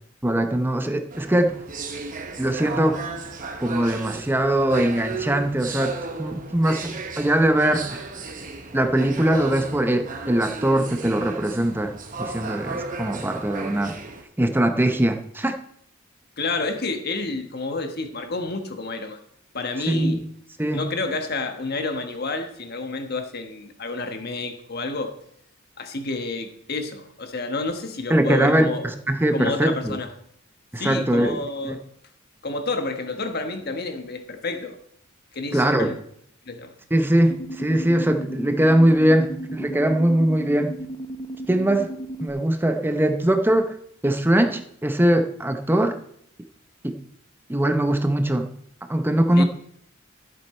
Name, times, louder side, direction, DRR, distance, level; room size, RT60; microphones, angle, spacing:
voice 1, 0.2-1.6 2.4-3.0 3.6-5.9 6.2-8.0 8.7-13.9 14.4-15.6 19.9-20.2 20.6-20.9 28.1-30.0 30.7-31.8 35.5-35.9 36.9-40.8 41.5-41.9 42.2-43.7 44.0-46.0 46.8-47.0 47.5-48.5 48.9-49.4, right 1 dB, 10° right, 7 dB, 0.6 m, -21 dB
sound 1, 1.1-14.2, right 3 dB, 40° right, 1.1 m, -35 dB
voice 2, 16.4-19.2 19.5-20.2 20.7-25.1 25.8-28.8 29.3-30.1 30.8-31.8 32.4-34.8 35.3-36.0 36.5-36.7 49.4-49.5, left 3 dB, 50° left, 7 dB, 1.3 m, -29 dB
sound 2, 37.3-42.3, right 1 dB, 30° left, 0.8 m, -35 dB
13.5 x 7.5 x 4.3 m, 0.70 s
head